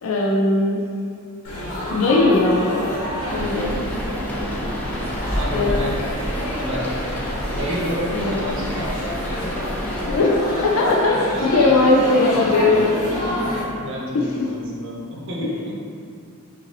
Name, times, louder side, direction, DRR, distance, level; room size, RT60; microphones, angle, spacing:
voice 1, 0.0-0.8 1.9-2.9 3.3-3.8 5.5-5.7 8.1-8.4 10.1-13.3 14.1-14.3 15.4-15.5, left 2 dB, 70° left, -2 dB, 0.5 m, -19 dB
Laughter / Chatter / Crowd, 1.4-13.6, equal, 85° left, 1.5 m, -29 dB
voice 2, 3.2-4.7 5.3-6.0 6.6-6.9 7.5-9.7 11.0-11.5 12.8-15.7, equal, 60° right, -3 dB, 0.8 m, -31 dB
sound 1, 3.3-10.4, equal, 10° left, 0.4 m, -29 dB
5.4 x 2.6 x 3.1 m, 2.4 s
head